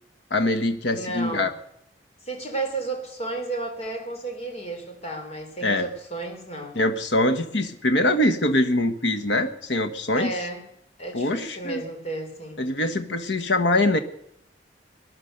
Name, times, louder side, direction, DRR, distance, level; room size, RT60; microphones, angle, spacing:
voice 1, 0.3-1.5 5.6-5.9 6.7-10.3 11.1-11.8 12.6-14.0, left 1 dB, 75° left, 6 dB, 1.3 m, -23 dB
voice 2, 0.9-1.5 2.3-6.8 10.2-10.6 11.0-12.6, right 2 dB, 35° left, 3 dB, 3.4 m, -32 dB
19.5 x 11.0 x 6.6 m, 0.79 s
head